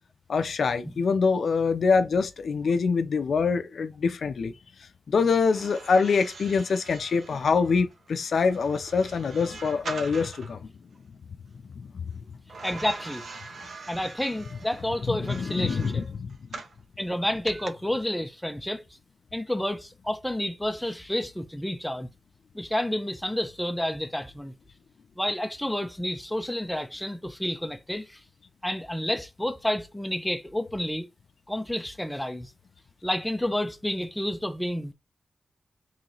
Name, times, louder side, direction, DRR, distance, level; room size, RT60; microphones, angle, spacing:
voice 1, 0.3-4.5 5.1-10.7 11.8-12.1 15.1-16.6, left 5 dB, 85° left, 0.4 m, -25 dB
sound 1, 5.4-10.6 12.5-16.8 17.5-17.7, right 4 dB, 80° right, 0.6 m, -43 dB
voice 2, 12.6-13.2 13.9-16.0 17.0-18.8 19.3-22.1 22.5-24.5 25.2-28.2 28.6-31.0 31.5-32.5 33.0-34.9, left 1 dB, 5° left, 0.5 m, -30 dB
3.2 x 2.9 x 3.8 m
wide cardioid pair, 140°, 0 cm